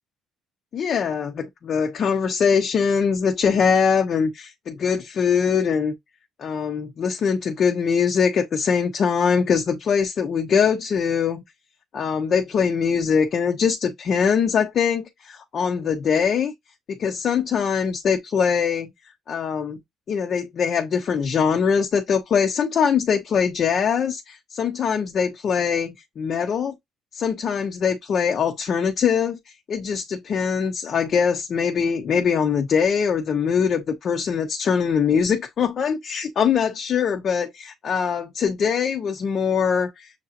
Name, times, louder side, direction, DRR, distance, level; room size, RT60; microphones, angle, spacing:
voice 1, 0.7-5.9 6.4-11.4 11.9-16.5 16.9-18.9 19.3-19.8 20.1-26.7 27.1-29.4 29.7-40.1, left 6 dB, 40° left, 0.6 m, -22 dB
6.6 x 2.8 x 2.5 m
cardioid pair, 145°, 0 cm